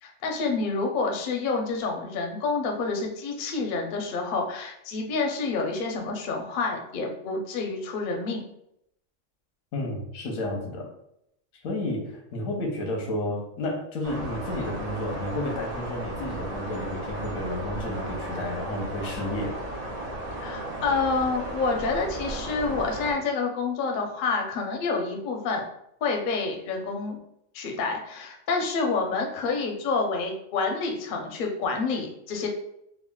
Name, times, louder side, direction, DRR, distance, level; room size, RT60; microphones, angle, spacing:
voice 1, 0.0-8.4 20.4-25.6 26.0-27.2 27.5-32.5, left 4 dB, 60° left, 2 dB, 0.5 m, -28 dB
voice 2, 9.7-10.9 11.6-19.6, left 1 dB, 90° left, 1 dB, 1.1 m, -31 dB
sound 1, 14.0-23.1, right 1 dB, 85° right, 0.3 m, -35 dB
3.6 x 2.1 x 2.2 m, 0.77 s
omnidirectional pair, 1.4 m